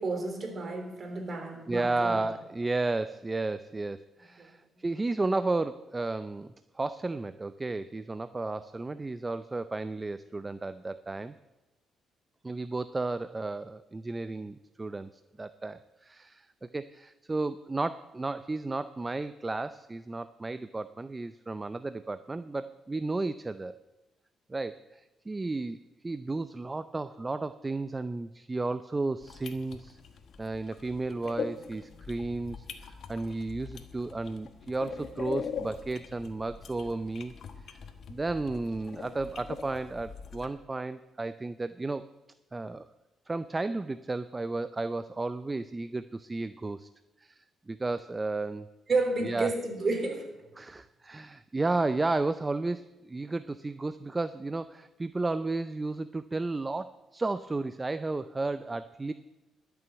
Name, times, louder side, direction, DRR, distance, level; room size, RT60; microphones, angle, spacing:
voice 1, 0.0-2.2 4.4-4.5 48.9-50.3, right 3 dB, 40° right, 3 dB, 3.3 m, -31 dB
voice 2, 1.7-11.4 12.4-15.1 15.4-23.7 24.5-25.8 26.0-30.0 30.4-37.3 37.7-37.8 38.1-42.1 42.5-42.9 43.3-46.9 47.2-48.7 49.2-49.5 50.6-59.1, right 3 dB, 20° right, 13 dB, 0.4 m, -33 dB
sound 1, 29.2-40.5, left 6 dB, 60° left, 1.2 m, -42 dB
12.5 x 6.9 x 8.8 m, 1.0 s
cardioid pair, 90°, 0 cm